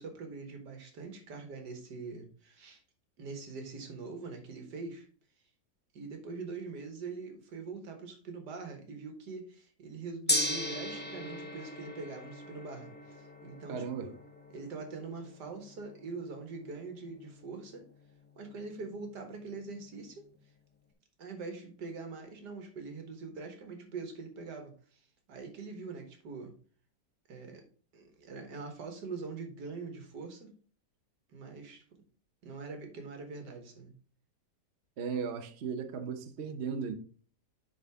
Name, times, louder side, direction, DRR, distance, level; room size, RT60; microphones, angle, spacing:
voice 1, 0.0-2.8 3.2-5.1 5.9-14.1 14.5-17.8 18.4-20.2 21.2-26.5 27.3-27.6 27.9-30.5 31.3-31.8 32.4-33.9, right 4 dB, 80° right, 2.0 m, -43 dB
Gong, 10.3-20.5, left 1 dB, 10° left, 0.5 m, -39 dB
voice 2, 13.7-14.1 35.0-36.9, right 6 dB, 50° right, 0.9 m, -36 dB
9.3 x 4.0 x 3.5 m
omnidirectional pair, 1.8 m